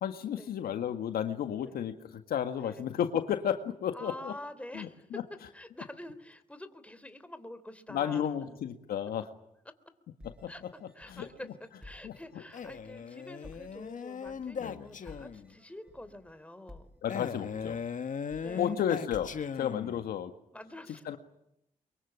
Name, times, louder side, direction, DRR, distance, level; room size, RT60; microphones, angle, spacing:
voice 1, 0.0-4.3 4.7-5.2 7.9-9.3 10.4-10.5 11.1-11.3 12.0-12.1 14.6-14.9 17.0-17.8 18.6-19.3 19.6-20.3 21.1-21.2, left 9 dB, 80° left, 8 dB, 1.7 m, -32 dB
voice 2, 3.9-8.3 9.6-9.9 10.5-16.9 18.4-18.8 20.5-21.2, left 1 dB, 10° left, 12 dB, 3.3 m, -47 dB
sound 1, 10.2-19.5, left 1 dB, 5° right, 7.8 m, -56 dB
Male speech man speaking, 12.5-15.5 17.1-20.1, left 6 dB, 55° left, 1.7 m, -38 dB
24.0 x 23.0 x 10.0 m, 0.81 s
supercardioid pair, 50°, 15 cm